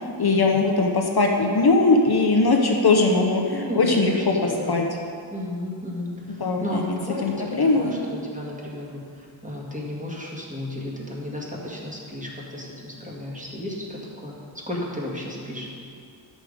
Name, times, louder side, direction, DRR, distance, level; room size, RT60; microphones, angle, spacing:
voice 1, 0.2-4.9 6.4-7.0 7.2-7.9, left 3 dB, 50° left, 1 dB, 1.0 m, -20 dB
voice 2, 3.6-4.9 5.3-14.4 14.6-15.7, left 1 dB, 15° right, -4 dB, 2.0 m, -33 dB
11.5 x 6.4 x 5.1 m, 2.4 s
wide cardioid pair, 105°, 48 cm